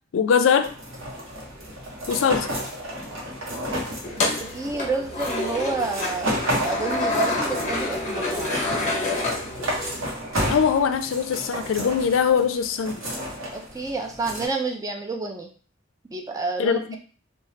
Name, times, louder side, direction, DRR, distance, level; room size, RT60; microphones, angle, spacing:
voice 1, 0.1-0.7 2.1-2.5 10.5-13.0 16.6-17.0, left 7 dB, 80° left, 10 dB, 0.4 m, -22 dB
sound 1, 0.6-14.5, equal, 90° right, 0.9 m, -32 dB
sound 2, 4.0-10.1, left 2 dB, 35° left, 0.6 m, -28 dB
voice 2, 4.2-8.6 13.5-15.5 16.1-16.8, right 3 dB, 20° right, 3 dB, 0.3 m, -29 dB
3.2 x 2.2 x 2.8 m, 0.40 s
head